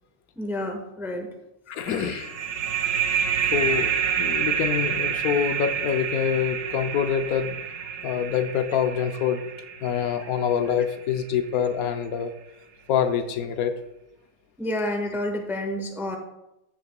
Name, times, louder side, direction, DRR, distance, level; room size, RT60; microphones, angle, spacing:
voice 1, 0.4-1.3 14.6-16.2, left 1 dB, ahead, 3 dB, 0.7 m, -29 dB
voice 2, 1.7-2.4 3.5-7.6 8.0-9.5 9.8-12.3 12.9-13.7, left 8 dB, 75° left, 8 dB, 1.1 m, -26 dB
sound 1, 1.9-11.2, right 8 dB, 85° right, 1.2 m, -28 dB
14.0 x 6.8 x 2.2 m, 0.89 s
omnidirectional pair, 1.6 m